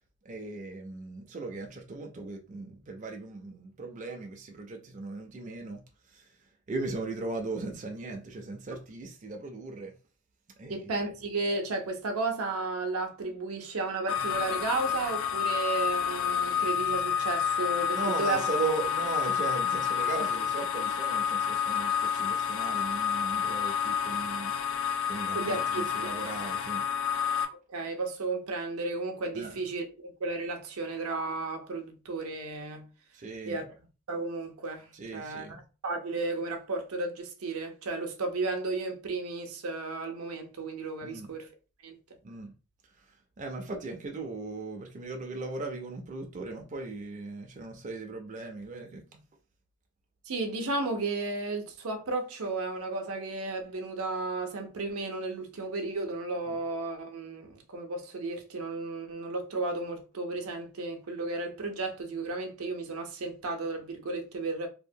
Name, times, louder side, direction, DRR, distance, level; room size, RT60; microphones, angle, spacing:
voice 1, 0.2-5.8 6.1-6.4 6.7-9.9 10.6-10.9 17.9-24.6 25.1-26.8 29.3-29.6 33.1-33.6 34.9-35.7 41.0-41.3 42.2-42.5 43.1-49.2 56.5-56.6, right 3 dB, 35° right, 0.4 m, -38 dB
voice 2, 10.7-18.4 25.3-26.1 27.7-32.9 33.5-33.7 34.1-41.5 41.8-42.0 50.3-64.7, right 3 dB, 80° right, 0.6 m, -33 dB
sound 1, 14.1-27.4, left 8 dB, 65° left, 0.4 m, -29 dB
2.8 x 2.1 x 2.6 m
head